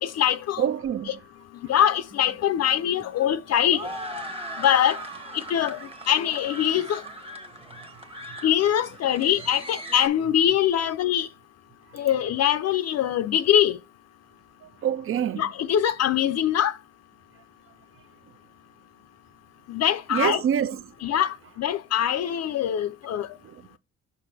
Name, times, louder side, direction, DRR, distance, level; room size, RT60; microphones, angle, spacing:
voice 1, 0.0-0.7 1.1-1.2 1.7-3.8 4.6-5.0 5.3-5.8 6.1-7.0 8.4-11.3 11.9-13.8 15.4-16.7 19.7-20.4 21.0-23.3, left 10 dB, 60° left, 0.5 m, -23 dB
voice 2, 0.6-1.1 14.8-15.4 20.1-20.8, right 9 dB, 45° right, 0.4 m, -25 dB
sound 1, 2.1-10.1, right 1 dB, 20° right, 1.0 m, -39 dB
5.8 x 5.3 x 3.3 m
cardioid pair, 90°, 30 cm